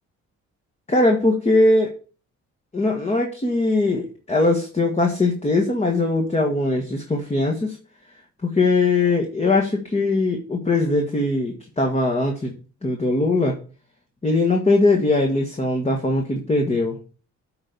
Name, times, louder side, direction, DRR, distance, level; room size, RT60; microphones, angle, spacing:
voice 1, 0.9-1.9 2.7-7.8 8.4-12.5 12.8-13.5 14.2-17.0, left 2 dB, 20° left, 1 dB, 1.5 m, -20 dB
8.8 x 3.9 x 6.9 m, 0.38 s
cardioid pair, 90°, 30 cm